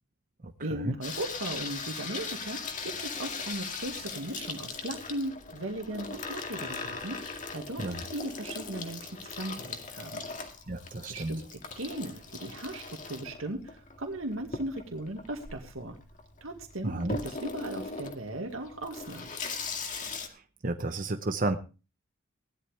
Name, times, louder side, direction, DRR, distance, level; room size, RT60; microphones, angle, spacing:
voice 1, 0.6-10.2 11.1-16.0 16.4-19.3, right 1 dB, 80° right, 3 dB, 2.1 m, -37 dB
Water tap faucet / Sink (filling or washing), 1.0-20.3, left 4 dB, 40° left, 2.1 m, -39 dB
voice 2, 10.7-11.3 16.8-17.1 20.6-21.6, right 2 dB, 40° right, 7 dB, 0.9 m, -31 dB
17.0 x 12.0 x 3.3 m, 0.32 s
head